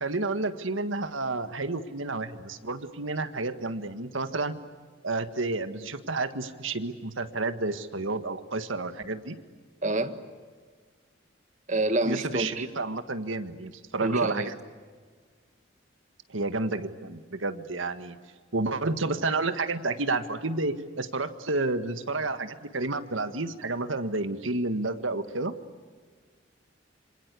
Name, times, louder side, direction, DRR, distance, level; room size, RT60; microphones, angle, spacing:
voice 1, 0.0-4.5 5.0-9.4 12.0-14.6 16.3-18.2 18.5-25.5, right 3 dB, 85° right, 10 dB, 1.7 m, -30 dB
voice 2, 9.8-10.2 11.7-12.7 14.0-14.5, right 2 dB, 40° right, 9 dB, 1.6 m, -27 dB
27.5 x 26.0 x 8.4 m, 1.5 s
head